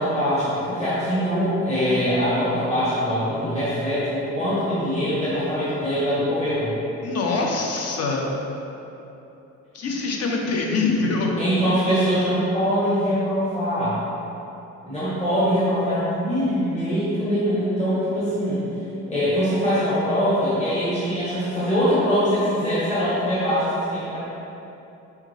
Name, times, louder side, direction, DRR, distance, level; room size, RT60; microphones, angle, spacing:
voice 1, 0.0-6.7 11.4-14.0 14.8-18.6 19.1-23.6 23.9-24.2, equal, 20° left, -12 dB, 1.3 m, -23 dB
voice 2, 7.0-8.3 9.7-11.3, left 3 dB, 55° left, 0 dB, 0.7 m, -24 dB
4.5 x 3.5 x 3.2 m, 3.0 s
cardioid pair, 90°, 30 cm